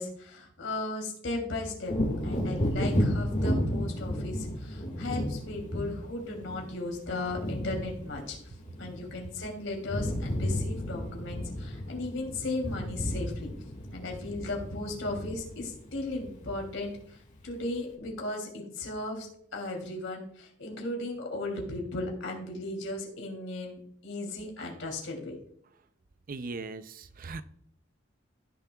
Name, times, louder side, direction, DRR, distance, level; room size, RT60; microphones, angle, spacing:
voice 1, 0.0-8.4 8.8-13.5 13.9-16.9 17.4-25.3, left 2 dB, 85° left, 1 dB, 3.0 m, -36 dB
Wind / Thunder, 1.8-9.4 9.7-16.9 17.4-17.5, equal, 40° left, 1.8 m, -33 dB
voice 2, 26.3-27.4, right 3 dB, 45° right, 12 dB, 0.5 m, -39 dB
16.0 x 6.8 x 2.3 m, 0.67 s
head